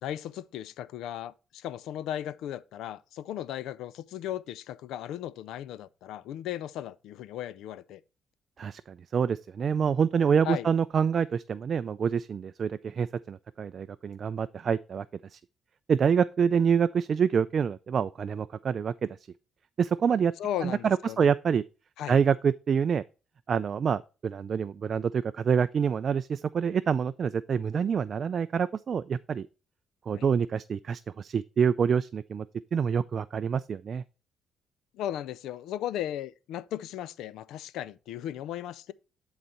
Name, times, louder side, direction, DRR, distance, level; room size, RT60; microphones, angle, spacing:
voice 1, 0.0-8.0 10.4-10.7 20.4-21.3 22.0-22.2 30.1-30.3 34.9-38.9, left 11 dB, 85° left, 0.4 m, -36 dB
voice 2, 8.6-15.1 15.3-15.4 15.9-19.1 19.8-20.3 20.6-21.6 22.1-23.0 23.5-29.5 30.1-32.5 32.7-34.0, right 7 dB, 50° right, 0.3 m, -26 dB
11.0 x 4.1 x 4.2 m
cardioid pair, 90°, 0 cm